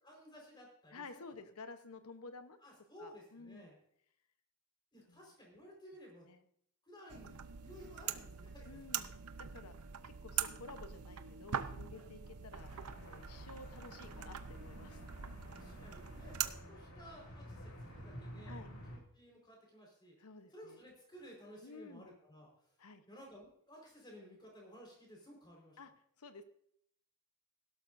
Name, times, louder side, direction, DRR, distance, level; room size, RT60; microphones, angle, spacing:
voice 1, 0.0-1.4 2.6-3.8 4.9-6.3 6.8-9.0 11.9-12.0 15.2-18.6 18.9-20.2 20.5-22.5 23.1-25.8, equal, 20° left, -1 dB, 4.5 m, -56 dB
voice 2, 0.9-2.6 3.0-3.7 5.1-5.2 6.2-6.4 8.6-9.1 9.5-9.7 10.0-15.0 18.5-18.7 20.2-20.8 21.6-22.1 22.8-23.0 25.8-25.9 26.2-26.4, left 3 dB, 90° left, 9 dB, 1.0 m, -52 dB
sound 1, 7.1-16.5, right 8 dB, 90° right, 0.7 m, -43 dB
sound 2, 12.6-19.0, equal, 75° left, 2.5 m, -51 dB
17.0 x 12.0 x 2.6 m, 0.68 s
head